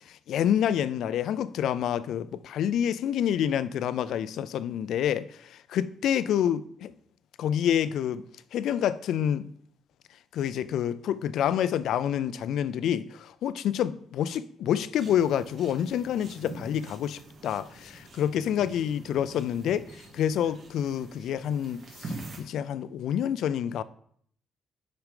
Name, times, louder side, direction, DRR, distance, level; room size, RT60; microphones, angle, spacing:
voice 1, 0.1-6.9 7.4-8.2 8.5-9.5 10.3-23.8, left 9 dB, 75° left, 0.4 m, -28 dB
sound 1, 15.0-22.4, right 2 dB, 55° right, 2.1 m, -45 dB
6.4 x 5.0 x 5.0 m
cardioid pair, 90°, 0 cm